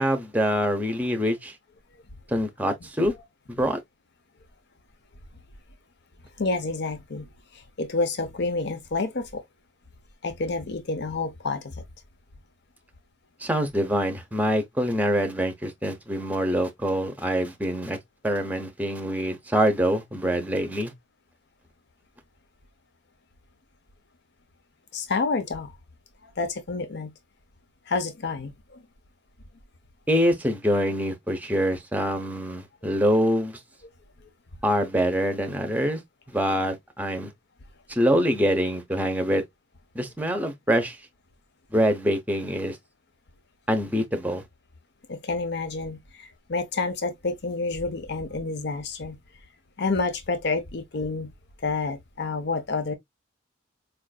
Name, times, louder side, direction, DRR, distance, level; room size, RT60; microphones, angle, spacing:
voice 1, 0.0-1.5 2.3-3.1 3.5-3.8 13.4-18.0 18.2-20.9 30.1-33.6 34.6-36.0 36.3-37.3 37.9-39.4 39.9-41.0 41.7-42.8 43.7-44.4, equal, 10° right, 0.7 m, -25 dB
voice 2, 6.4-9.4 10.2-11.8 24.9-25.7 26.2-27.1 27.9-28.8 33.8-33.9 45.1-49.2 49.8-51.3 51.6-52.9, left 3 dB, 60° left, 0.7 m, -29 dB
4.7 x 2.5 x 2.3 m
head